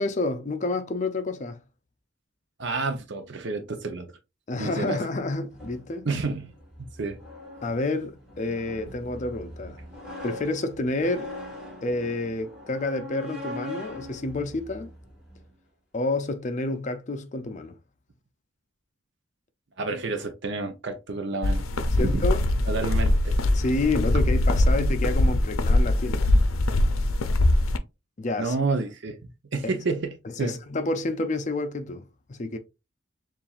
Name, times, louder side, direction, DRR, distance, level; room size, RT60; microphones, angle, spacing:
voice 1, 0.0-1.6 4.5-6.1 7.6-9.8 10.2-11.3 11.8-14.9 15.9-17.8 22.0-22.4 23.5-26.2 28.2-28.6 29.6-29.7 30.2-32.0 32.3-32.6, left 2 dB, 35° left, 0.5 m, -29 dB
voice 2, 2.6-4.1 4.6-5.0 6.0-6.5 7.0-7.2 19.8-21.6 22.0-22.2 22.7-23.4 28.4-29.2 29.5-30.6, right 3 dB, 60° right, 0.6 m, -29 dB
sound 1, 5.5-15.5, left 1 dB, 5° right, 1.8 m, -41 dB
sound 2, 21.4-27.8, left 1 dB, 85° left, 0.5 m, -22 dB
7.0 x 2.5 x 2.4 m
head